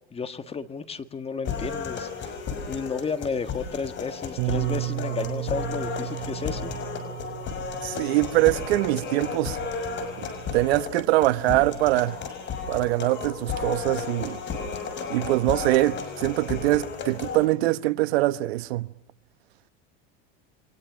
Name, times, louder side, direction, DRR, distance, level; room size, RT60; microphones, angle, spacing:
voice 1, 0.1-2.3 2.7-6.7, left 5 dB, 20° left, 1.7 m, -32 dB
sound 1, 1.5-17.5, left 5 dB, 35° left, 6.1 m, -33 dB
Bass guitar, 4.4-10.6, right 20 dB, 55° right, 1.7 m, -34 dB
voice 2, 7.8-9.6 10.2-12.2 12.7-14.4 15.1-18.9, right 18 dB, 80° right, 1.1 m, -23 dB
29.5 x 24.0 x 6.2 m
supercardioid pair, 130°, 31 cm